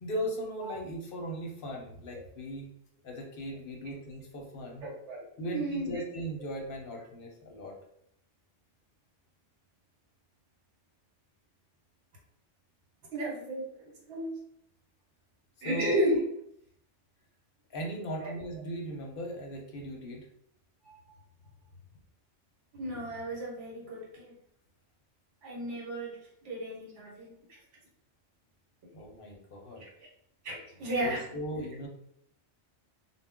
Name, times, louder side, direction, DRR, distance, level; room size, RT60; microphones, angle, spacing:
voice 1, 0.0-2.7 3.0-4.9 5.4-7.8 15.6-16.0 17.7-20.3 28.9-29.8 31.0-31.9, equal, 55° left, 1 dB, 0.7 m, -38 dB
voice 2, 4.8-5.3 5.5-6.0 13.1-13.6 14.1-14.3 15.6-16.2 18.2-18.4 20.8-21.0 22.7-24.3 25.4-26.2 26.4-27.6 29.8-30.1 30.4-31.3, right 1 dB, 70° right, -3 dB, 1.3 m, -33 dB
2.2 x 2.1 x 3.5 m, 0.71 s
omnidirectional pair, 1.3 m